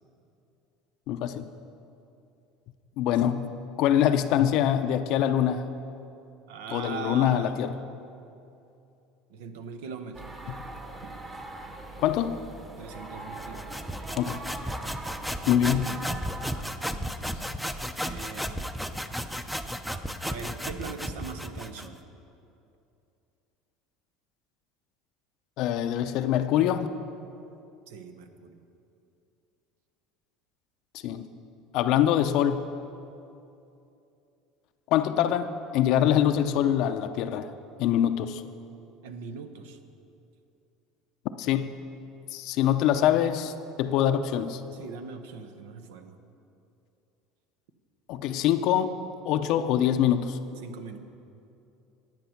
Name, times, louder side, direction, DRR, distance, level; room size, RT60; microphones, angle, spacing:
voice 1, 1.1-1.5 3.0-3.5 3.8-5.7 6.7-7.7 12.0-12.4 14.2-14.4 15.5-15.9 25.6-27.0 31.0-31.3 31.7-32.6 34.9-37.5 37.8-38.4 41.4-41.7 42.3-43.5 43.8-44.6 48.1-48.9 49.2-50.4, left 10 dB, 60° left, 9 dB, 0.5 m, -24 dB
voice 2, 6.5-7.5 9.3-10.3 11.0-11.1 12.8-13.8 16.9-17.2 18.0-18.6 20.2-22.0 27.9-28.6 39.0-39.8 44.7-46.2 50.6-51.0, right 6 dB, 85° right, 8 dB, 0.8 m, -40 dB
sound 1, 10.1-16.6, right 2 dB, 20° right, 1.2 m, -41 dB
sound 2, 13.4-22.0, equal, ahead, 0.5 m, -34 dB
10.5 x 8.9 x 5.8 m, 2.7 s
supercardioid pair, 115°, 0 cm